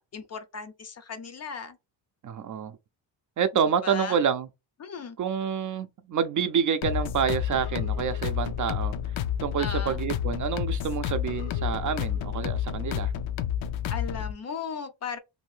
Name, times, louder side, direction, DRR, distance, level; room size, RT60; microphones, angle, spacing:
voice 1, 0.0-1.8 3.8-4.2 4.8-5.2 9.6-10.0 13.9-15.2, left 5 dB, 35° left, 0.4 m, -36 dB
voice 2, 2.2-2.8 3.4-4.5 5.2-8.9 9.4-13.1, right 7 dB, 45° right, 0.4 m, -28 dB
sound 1, 6.8-14.3, left 10 dB, 80° left, 0.6 m, -30 dB
2.7 x 2.6 x 3.2 m
cardioid pair, 130°, 46 cm